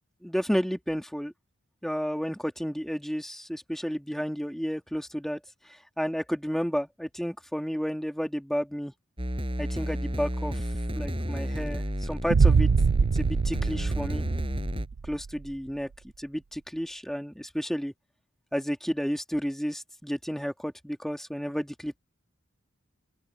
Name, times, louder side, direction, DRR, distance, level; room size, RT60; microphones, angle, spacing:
voice 1, 0.2-1.3 1.8-5.4 5.7-8.9 9.6-10.7 10.9-12.7 13.0-14.3 15.0-15.9 16.2-17.9 18.5-22.0, equal, ahead, 2.1 m, -32 dB
sound 1, 9.2-14.9, equal, 25° right, 8.0 m, -32 dB
sound 2, 12.3-15.3, right 5 dB, 80° right, 0.5 m, -23 dB
open air
head